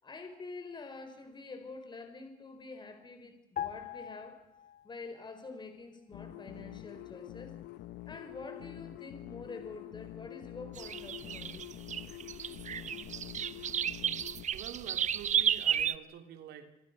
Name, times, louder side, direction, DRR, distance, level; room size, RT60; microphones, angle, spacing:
voice 1, 0.0-4.4 4.8-7.5 8.0-11.7, left 3 dB, 25° left, 7 dB, 4.5 m, -47 dB
sound 1, 3.6-5.2 5.5-5.7, left 10 dB, 55° left, 3.0 m, -41 dB
sound 2, 6.1-14.5, left 15 dB, 80° left, 1.1 m, -46 dB
sound 3, 10.8-16.0, right 9 dB, 45° right, 0.9 m, -32 dB
voice 2, 14.5-16.7, right 9 dB, 80° right, 6 dB, 3.2 m, -47 dB
26.0 x 26.0 x 6.7 m, 0.87 s
cardioid pair, 110°, 17 cm